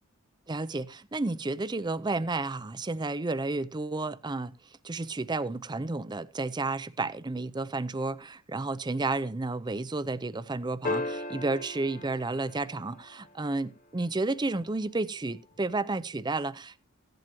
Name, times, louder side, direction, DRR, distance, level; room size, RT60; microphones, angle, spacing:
voice 1, 0.5-4.5 4.8-16.8, right 3 dB, 20° right, 0.5 m, -31 dB
sound 1, 10.8-13.4 15.6-15.7, left 2 dB, 35° left, 0.9 m, -36 dB
16.0 x 10.5 x 3.0 m
head